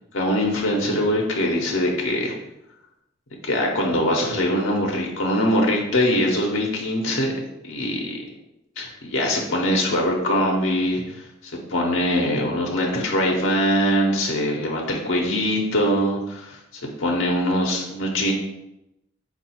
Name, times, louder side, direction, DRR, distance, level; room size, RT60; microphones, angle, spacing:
voice 1, 0.1-2.3 3.4-7.3 7.6-8.2 8.8-11.2 11.4-18.3, left 1 dB, 85° left, -1 dB, 0.7 m, -22 dB
4.6 x 2.4 x 4.2 m, 0.88 s
head